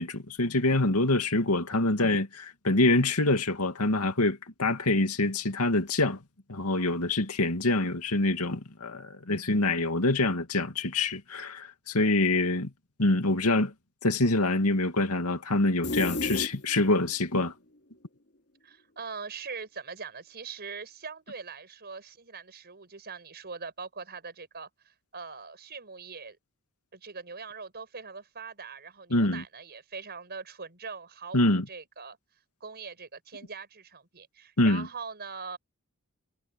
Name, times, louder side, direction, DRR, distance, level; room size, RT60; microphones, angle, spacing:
voice 1, 0.0-6.2 6.5-12.7 13.0-13.7 14.0-17.5 29.1-29.4 31.3-31.6 34.6-34.9, left 2 dB, 80° left, 2.5 m, -25 dB
sound 1, 15.8-17.1, left 2 dB, 50° left, 2.9 m, -32 dB
voice 2, 18.6-26.4 26.9-32.2 32.6-35.6, right 5 dB, 50° right, 5.4 m, -42 dB
head